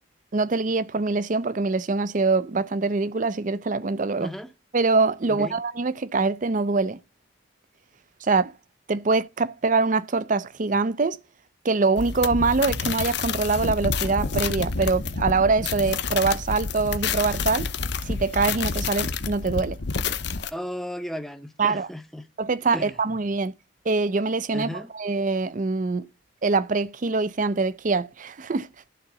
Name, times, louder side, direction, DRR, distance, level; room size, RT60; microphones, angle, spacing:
voice 1, 0.3-4.3 4.7-7.0 8.2-8.5 8.9-11.2 11.6-17.7 18.1-19.8 21.6-21.9 22.4-23.5 23.9-26.1 26.4-28.7, right 4 dB, 40° right, 0.5 m, -24 dB
voice 2, 4.2-4.5 5.3-5.6 20.5-22.3 22.7-22.9 24.5-24.9, equal, ahead, 0.7 m, -34 dB
sound 1, 11.9-20.5, left 5 dB, 60° left, 0.8 m, -28 dB
12.0 x 3.9 x 6.7 m
head